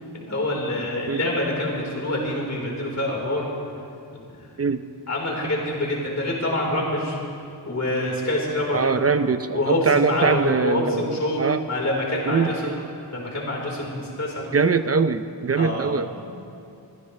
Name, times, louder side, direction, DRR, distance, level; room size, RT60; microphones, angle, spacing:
voice 1, 0.1-3.5 4.1-4.5 5.1-7.2 7.7-8.8 9.5-12.8 13.1-14.5 15.6-16.2, left 1 dB, 40° left, -3 dB, 4.2 m, -26 dB
voice 2, 8.7-11.6 12.3-12.8 14.5-16.1, right 5 dB, 35° right, 11 dB, 0.6 m, -22 dB
24.0 x 16.0 x 3.3 m, 2.6 s
wide cardioid pair, 105°, 42 cm